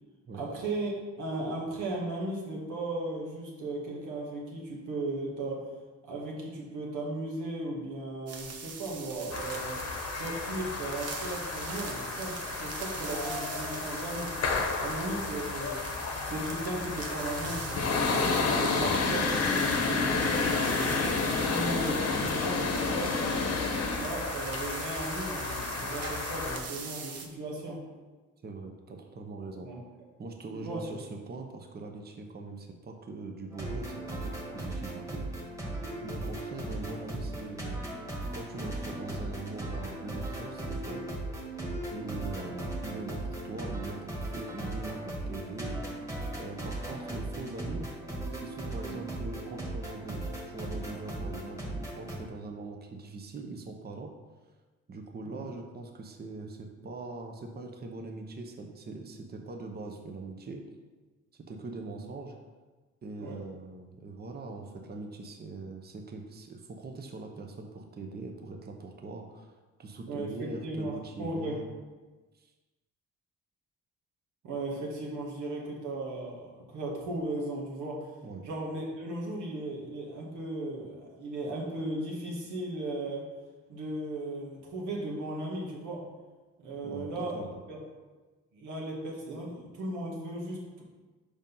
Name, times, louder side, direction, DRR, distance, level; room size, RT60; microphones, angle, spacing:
voice 1, 0.3-5.7 6.1-9.8 10.1-14.4 14.8-15.9 16.2-21.0 21.4-23.4 23.6-27.8 29.6-29.8 30.5-30.8 42.4-42.5 55.2-55.5 63.2-63.4 70.1-71.6 74.4-78.1 78.4-83.3 83.7-86.1 86.6-87.4 87.7-87.8 88.5-90.8, right 2 dB, 85° right, -2 dB, 2.0 m, -36 dB
sound 1, 8.3-27.3, right 5 dB, 55° right, 1.1 m, -42 dB
sound 2, 9.3-26.6, left 4 dB, 55° left, 1.0 m, -31 dB
voice 2, 18.8-19.3 22.2-22.3 28.4-29.7 30.2-35.4 36.0-37.8 38.3-41.0 41.9-45.8 46.3-47.9 48.3-54.1 54.9-60.6 61.3-62.3 63.0-69.5 69.8-71.7 72.3-72.5 78.2-78.5 86.8-87.6, right 3 dB, 35° right, 3 dB, 0.9 m, -42 dB
sound 3, 33.5-52.2, right 1 dB, 10° right, 1.8 m, -37 dB
5.3 x 5.1 x 5.5 m, 1.3 s
cardioid pair, 90°, 30 cm